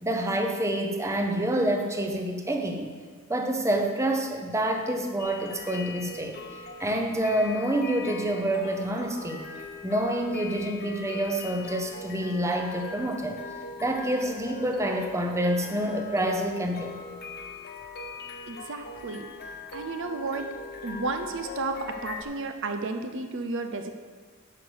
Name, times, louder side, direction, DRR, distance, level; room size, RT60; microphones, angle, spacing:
voice 1, 0.0-2.9 3.3-9.5 9.8-13.4 13.8-17.0, right 1 dB, 15° right, 3 dB, 0.8 m, -27 dB
sound 1, 5.2-22.2, left 4 dB, 45° left, 1.0 m, -41 dB
voice 2, 18.5-19.3 19.7-20.5 20.8-23.9, right 3 dB, 55° right, 7 dB, 0.7 m, -32 dB
10.5 x 5.1 x 6.4 m, 1.5 s
head